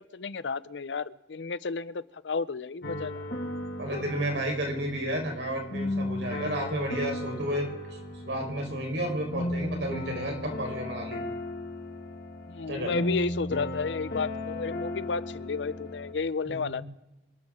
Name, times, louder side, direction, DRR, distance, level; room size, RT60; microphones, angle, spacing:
voice 1, 0.0-3.3 12.5-16.8, left 4 dB, 90° left, 17 dB, 0.6 m, -32 dB
sound 1, 2.8-16.1, left 1 dB, 60° left, 2.0 m, -35 dB
voice 2, 3.8-7.7 8.2-11.2 12.7-13.0 16.4-16.8, equal, 85° right, 2 dB, 4.3 m, -32 dB
26.5 x 12.5 x 3.7 m, 0.99 s
head